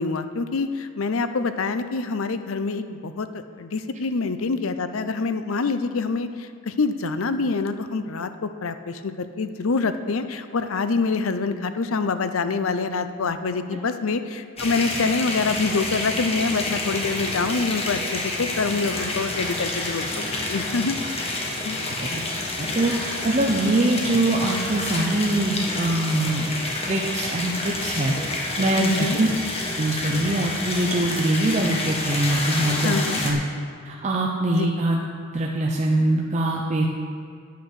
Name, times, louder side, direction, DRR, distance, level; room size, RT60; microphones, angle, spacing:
voice 1, 0.0-21.4 21.6-21.8 28.8-29.2 32.8-33.2 34.5-34.8, left 4 dB, 70° left, 10 dB, 0.6 m, -26 dB
sound 1, 14.6-33.3, left 2 dB, 30° left, 1.3 m, -28 dB
voice 2, 22.6-26.5 26.9-28.2 28.6-29.3 29.8-33.0 33.2-33.4 33.8-35.0 35.3-36.9, right 1 dB, 35° right, -1 dB, 0.7 m, -23 dB
9.3 x 8.7 x 6.4 m, 2.2 s
head